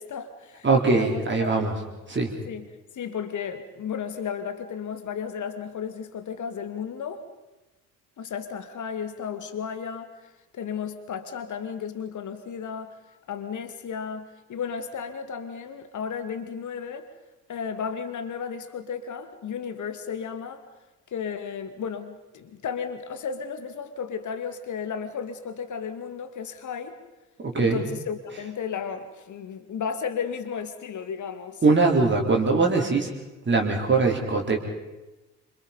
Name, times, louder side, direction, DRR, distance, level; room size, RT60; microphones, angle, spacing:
voice 1, 0.0-1.5 2.5-2.7 2.9-7.2 8.2-13.0 13.3-17.1 17.5-20.6 21.1-27.0 27.5-31.6, left 7 dB, 40° left, 9 dB, 2.4 m, -34 dB
voice 2, 0.6-1.8 2.1-2.3 27.4-27.8 31.6-33.1 33.5-34.6, right 3 dB, 25° right, 0 dB, 4.0 m, -21 dB
27.5 x 27.0 x 5.3 m, 1.1 s
figure-of-eight pair, 50°, 46 cm